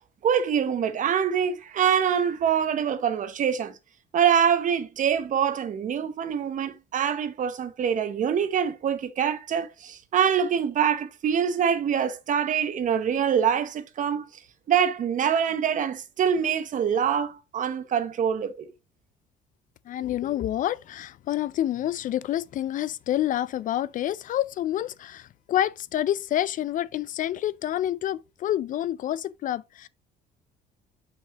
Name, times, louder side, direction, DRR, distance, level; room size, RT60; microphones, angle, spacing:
voice 1, 0.2-3.7 4.1-14.3 14.7-18.7, right 8 dB, 50° right, 1.0 m, -25 dB
voice 2, 19.9-29.9, left 12 dB, 50° left, 0.4 m, -28 dB
6.0 x 5.4 x 2.9 m
cardioid pair, 110°, 17 cm